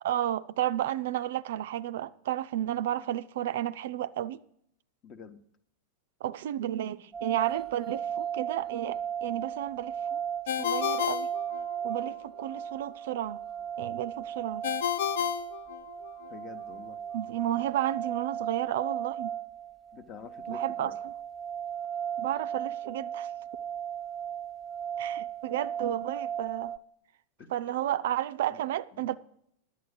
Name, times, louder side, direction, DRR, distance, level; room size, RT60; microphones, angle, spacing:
voice 1, 0.0-4.4 6.2-10.2 10.6-11.3 11.8-13.4 13.8-14.6 17.1-19.3 20.5-20.9 22.2-23.3 25.0-26.7 27.5-29.2, right 12 dB, 55° right, 0.3 m, -32 dB
voice 2, 5.0-5.4 16.3-17.0 19.9-21.0 27.4-27.6 28.5-28.6 28.9-29.2, left 6 dB, 35° left, 0.9 m, -47 dB
sound 1, 7.1-26.8, right 9 dB, 5° right, 1.0 m, -36 dB
Ringtone, 10.5-12.1 14.6-16.3, left 10 dB, 55° left, 0.4 m, -31 dB
11.0 x 8.5 x 6.4 m
figure-of-eight pair, 90°, 0 cm